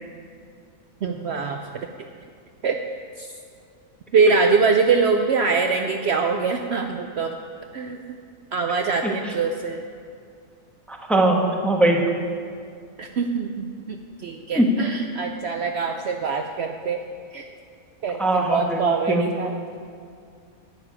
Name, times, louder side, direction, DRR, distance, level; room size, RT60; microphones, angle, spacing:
voice 1, 1.0-1.6 2.6-2.8 3.2-3.3 4.1-7.3 7.7-8.2 8.5-9.8 13.0-17.0 17.3-17.5 18.0-19.6, right 5 dB, 60° right, 4 dB, 0.8 m, -23 dB
voice 2, 10.9-12.0 14.5-14.7 18.2-18.8 19.1-19.2, right 2 dB, ahead, 0 dB, 1.0 m, -20 dB
12.0 x 9.5 x 4.9 m, 2.4 s
omnidirectional pair, 1.4 m